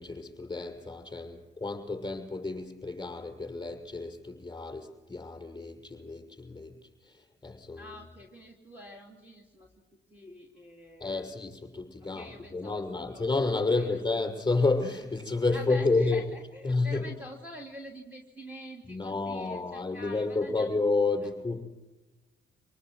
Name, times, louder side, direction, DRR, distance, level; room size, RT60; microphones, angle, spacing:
voice 1, 0.0-6.7 7.0-7.9 11.0-16.2 16.6-17.1 18.9-21.6, left 3 dB, 20° left, 5 dB, 6.1 m, -30 dB
voice 2, 7.7-9.7 10.1-11.3 12.0-13.3 13.7-14.0 15.5-20.7 21.2-21.3, equal, 10° right, -1 dB, 3.1 m, -46 dB
26.0 x 19.5 x 7.8 m, 1.1 s
cardioid pair, 90°, 20 cm